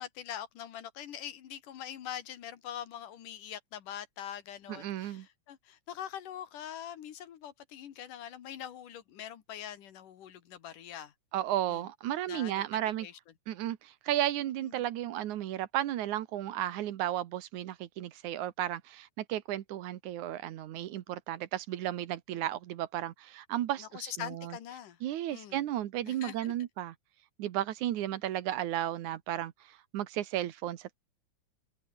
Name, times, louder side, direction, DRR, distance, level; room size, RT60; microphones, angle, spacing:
voice 1, 0.0-11.1 11.7-11.9 12.3-12.7 13.0-13.2 14.6-14.8 23.8-25.0 25.3-25.6 26.0-26.5, left 10 dB, 85° left, 3.4 m, -43 dB
voice 2, 4.7-5.3 11.3-13.1 13.5-24.6 25.0-26.9 27.4-30.9, right 12 dB, 75° right, 2.5 m, -34 dB
omnidirectional pair, 3.6 m